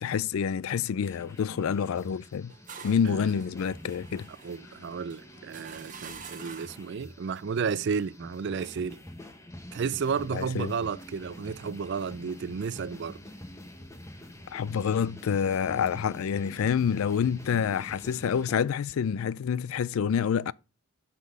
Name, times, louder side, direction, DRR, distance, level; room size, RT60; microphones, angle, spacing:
voice 1, 0.0-2.5 2.8-4.3 10.3-10.7 14.5-20.5, left 7 dB, 70° left, 0.3 m, -27 dB
sound 1, 1.0-18.5, left 1 dB, 15° left, 1.0 m, -47 dB
sound 2, 2.2-6.9, right 6 dB, 35° right, 1.2 m, -47 dB
voice 2, 4.4-9.0 9.7-13.2, right 6 dB, 55° right, 0.4 m, -32 dB
6.0 x 5.3 x 6.1 m
head